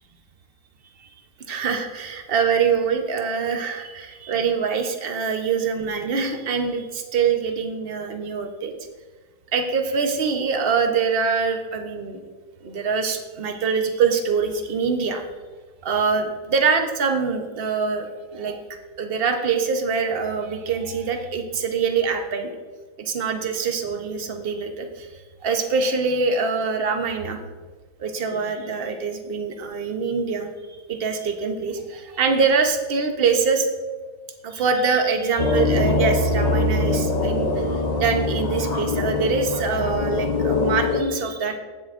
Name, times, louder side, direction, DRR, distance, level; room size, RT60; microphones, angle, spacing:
voice 1, 1.5-8.7 9.5-12.2 12.6-15.3 15.8-18.6 19.0-22.5 23.0-25.1 25.4-27.4 28.0-30.5 30.9-33.7 34.4-41.6, right 5 dB, 45° right, 4 dB, 0.7 m, -24 dB
sound 1, 35.4-41.0, left 2 dB, 75° left, 0.3 m, -23 dB
16.0 x 7.9 x 2.5 m, 1.4 s
omnidirectional pair, 2.2 m